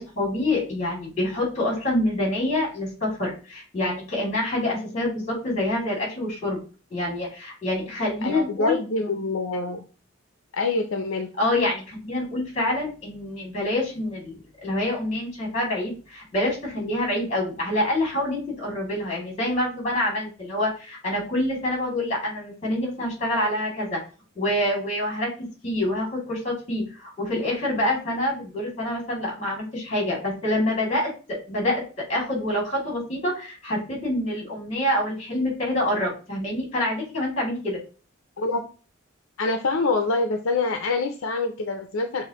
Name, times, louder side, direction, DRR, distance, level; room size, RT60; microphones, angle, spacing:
voice 1, 0.0-6.6 6.9-8.8 11.4-24.0 24.4-25.3 25.6-31.8 32.1-37.8, left 1 dB, 35° left, -1 dB, 2.5 m, -26 dB
voice 2, 8.2-9.8 10.5-11.3 38.4-38.6 39.4-42.3, left 3 dB, 70° left, 5 dB, 0.5 m, -25 dB
6.0 x 2.5 x 2.9 m, 0.35 s
head